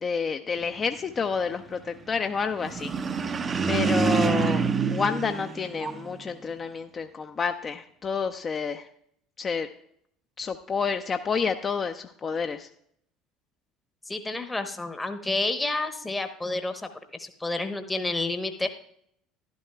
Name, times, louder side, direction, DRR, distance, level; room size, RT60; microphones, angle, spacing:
voice 1, 0.0-3.4 3.7-8.9 9.4-9.7 10.4-12.7, left 5 dB, 30° left, 7 dB, 0.5 m, -29 dB
sound 1, 2.6-6.2, right 5 dB, 35° right, 0.6 m, -26 dB
voice 2, 14.0-18.7, left 2 dB, 15° left, 8 dB, 0.9 m, -30 dB
12.0 x 11.5 x 2.3 m, 0.69 s
figure-of-eight pair, 65°, 0 cm